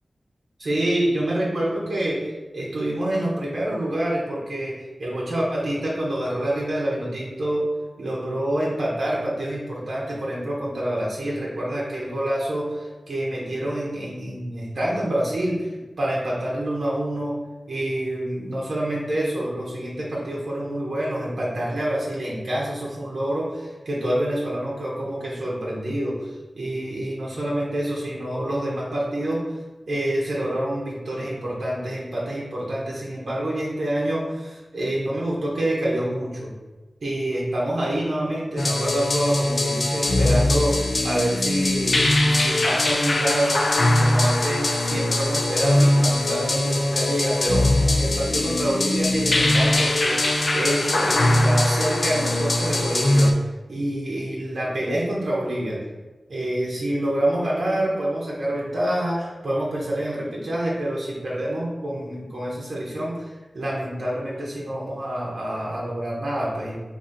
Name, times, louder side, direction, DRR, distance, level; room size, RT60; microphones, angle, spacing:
voice 1, 0.6-7.7 8.0-17.4 17.7-29.4 29.9-36.5 37.0-43.6 44.0-47.7 48.0-55.8 56.3-66.7, right 1 dB, 85° right, -5 dB, 0.9 m, -27 dB
sound 1, 38.6-53.3, left 1 dB, 55° left, 0.4 m, -21 dB
4.0 x 2.7 x 4.0 m, 1.2 s
wide cardioid pair, 95°, 0 cm